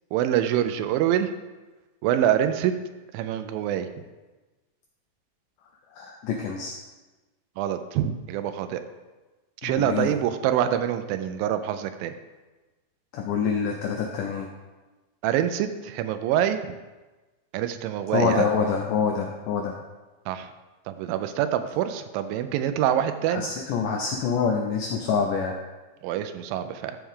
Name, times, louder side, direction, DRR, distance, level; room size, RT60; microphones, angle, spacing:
voice 1, 0.1-1.3 2.0-2.7 3.1-3.9 7.6-8.8 9.6-12.1 15.2-16.8 17.5-18.5 20.3-20.5 20.9-23.5 26.0-27.0, right 10 dB, 85° right, 9 dB, 2.1 m, -25 dB
voice 2, 5.9-6.7 9.6-10.1 13.1-14.5 18.1-19.7 23.3-25.6, left 6 dB, 80° left, 2 dB, 1.9 m, -26 dB
13.5 x 4.5 x 3.7 m, 1.2 s
omnidirectional pair, 4.5 m